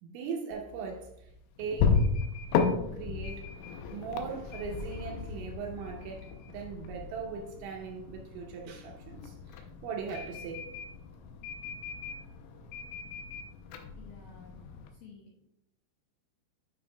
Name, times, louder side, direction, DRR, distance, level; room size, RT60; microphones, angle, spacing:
voice 1, 0.0-1.3 1.6-2.1 2.6-3.4 3.9-10.6, right 5 dB, 80° right, 1 dB, 3.0 m, -39 dB
sound 1, 0.5-14.9, left 5 dB, 90° left, 3.4 m, -35 dB
voice 2, 14.0-14.6 14.9-15.5, left 5 dB, 70° left, -5 dB, 2.2 m, -53 dB
9.6 x 6.3 x 2.2 m, 0.80 s
omnidirectional pair, 5.8 m